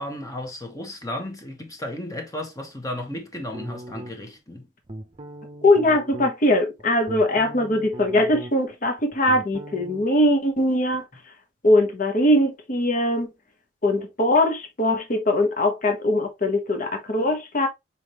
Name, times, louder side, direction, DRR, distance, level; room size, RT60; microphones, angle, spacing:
voice 1, 0.0-4.7, left 1 dB, 20° left, 1.0 m, -34 dB
sound 1, 3.5-4.4 4.9-6.3 6.8-8.7 9.0-10.1, right 1 dB, 30° right, 0.7 m, -39 dB
voice 2, 5.6-11.0 11.6-13.3 13.8-17.7, left 1 dB, 45° left, 1.0 m, -21 dB
4.2 x 3.6 x 3.0 m
head